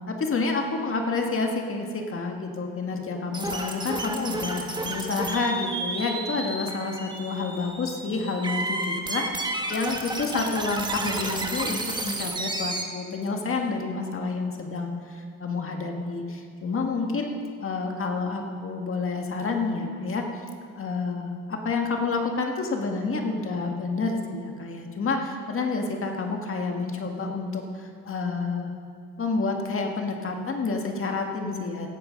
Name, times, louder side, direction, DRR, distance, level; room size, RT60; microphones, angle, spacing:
voice 1, 0.1-17.3 17.6-20.3 20.7-28.7 29.2-31.9, left 3 dB, 45° left, 2 dB, 1.9 m, -29 dB
sound 1, 3.3-12.8, right 2 dB, 15° right, 1.4 m, -32 dB
17.0 x 8.1 x 5.3 m, 2.2 s
cardioid pair, 90°, 30 cm